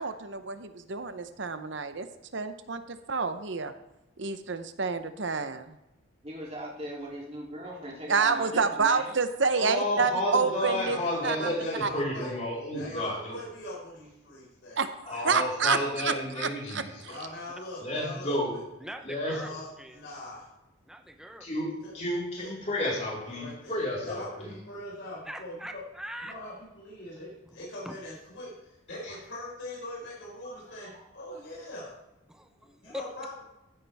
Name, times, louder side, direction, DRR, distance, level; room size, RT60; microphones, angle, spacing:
voice 1, 0.0-2.1 2.3-3.7 4.2-5.8 8.1-11.0 11.2-11.5 11.8-11.9 14.8-14.9 15.2-16.8, right 5 dB, 60° right, 10 dB, 0.8 m, -28 dB
voice 2, 6.2-9.2, right 1 dB, 30° right, -4 dB, 3.0 m, -39 dB
voice 3, 9.5-13.3 15.1-17.2 17.8-18.5 19.0-19.5 21.4-24.6 29.0-29.2 30.4-30.6, left 1 dB, 35° left, -5 dB, 4.3 m, -31 dB
voice 4, 10.5-12.3 12.7-14.8 17.0-18.6 19.2-20.5 21.8-21.9 22.4-22.5 23.2-25.8 26.2-32.0 32.8-33.4, left 1 dB, 60° left, -5 dB, 4.6 m, -42 dB
voice 5, 18.8-19.5 19.8-20.0 20.8-21.5 25.3-26.4 27.5-27.6 27.8-28.0 32.3-33.1, right 1 dB, 5° right, 6 dB, 0.8 m, -42 dB
15.0 x 9.6 x 3.5 m, 0.96 s
head